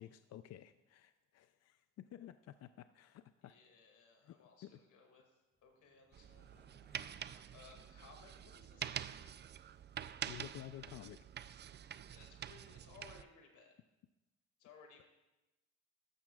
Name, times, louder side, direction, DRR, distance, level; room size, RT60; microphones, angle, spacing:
voice 1, 0.0-3.5 4.2-4.3 4.6-4.8 7.2-7.5 10.3-11.2 11.4-11.5, left 12 dB, 55° left, 11 dB, 0.4 m, -53 dB
voice 2, 3.4-5.2 5.6-6.5 7.5-9.4 12.1-13.7 14.6-15.0, left 4 dB, 85° left, 3 dB, 2.2 m, -61 dB
sound 1, 5.5-11.3, left 2 dB, 25° left, 2.3 m, -73 dB
sound 2, 6.1-13.2, right 9 dB, 35° right, 0.4 m, -47 dB
13.5 x 12.0 x 2.4 m, 1.0 s
cardioid pair, 90°, 30 cm